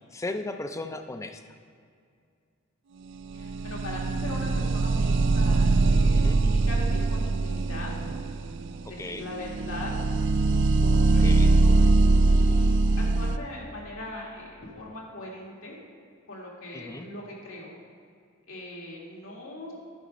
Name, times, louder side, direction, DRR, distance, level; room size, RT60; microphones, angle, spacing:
voice 1, 0.1-1.4 6.1-6.4 9.0-9.3 11.2-11.5 16.7-17.1, left 2 dB, 15° left, 8 dB, 0.4 m, -36 dB
voice 2, 3.3-8.2 8.9-9.9 10.8-11.7 12.3-12.8 13.1-15.8 16.3-17.7 18.5-19.7, left 1 dB, 80° left, -3 dB, 2.0 m, -40 dB
sound 1, 3.3-13.4, right 3 dB, 60° right, 0.3 m, -22 dB
11.5 x 5.1 x 5.1 m, 2.2 s
head